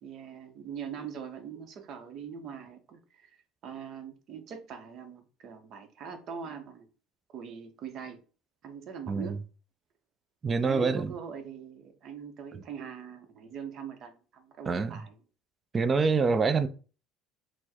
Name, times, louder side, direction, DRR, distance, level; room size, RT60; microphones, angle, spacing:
voice 1, 0.0-6.9 7.3-8.2 8.6-9.4 10.6-15.2, right 7 dB, 55° right, 0.8 m, -42 dB
voice 2, 9.1-9.4 10.4-11.1 14.7-15.0 15.7-16.7, right 4 dB, 30° right, 0.4 m, -26 dB
4.4 x 2.1 x 4.3 m
supercardioid pair, 95°, 0 cm